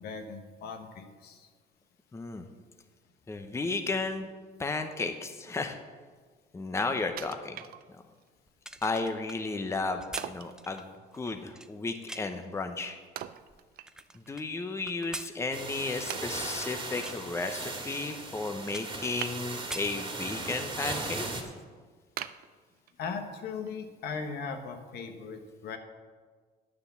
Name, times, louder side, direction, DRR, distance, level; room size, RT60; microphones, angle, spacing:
voice 1, 0.0-1.5 23.0-25.8, left 5 dB, 70° left, 6 dB, 1.3 m, -38 dB
voice 2, 2.1-2.4 3.3-4.3 4.6-5.8 6.5-7.6 8.8-13.0 14.3-21.3, left 3 dB, 15° left, 6 dB, 0.8 m, -33 dB
Wood, 7.2-8.3 8.8-8.9 10.2-10.6 13.2-14.3 14.6-14.7 15.4-15.5 16.1-16.8 19.2-19.9 20.4-20.8 21.3-21.4 22.2-23.2 23.7-23.8, right 11 dB, 60° right, 0.5 m, -42 dB
sound 1, 8.5-12.5 13.0-14.5 14.9-16.7 17.0-17.3 17.9-18.0 18.3-19.3 19.6-20.6 21.0-21.1, right 1 dB, 5° right, 0.4 m, -44 dB
sound 2, 15.5-21.4, right 3 dB, 30° right, 1.9 m, -38 dB
9.6 x 6.8 x 6.9 m, 1.5 s
cardioid pair, 110°, 17 cm